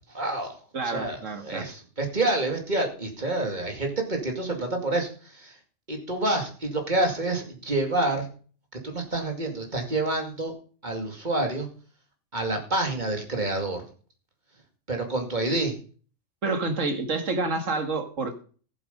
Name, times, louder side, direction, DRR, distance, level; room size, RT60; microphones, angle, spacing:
voice 1, 0.1-0.6 0.8-5.6 5.9-8.3 8.8-10.5 10.8-11.7 12.3-13.8 14.9-15.7, right 2 dB, 35° right, 3 dB, 2.5 m, -28 dB
voice 2, 0.7-1.7 16.4-18.4, right 3 dB, 80° right, 7 dB, 2.1 m, -28 dB
14.5 x 7.9 x 5.3 m, 0.41 s
omnidirectional pair, 1.3 m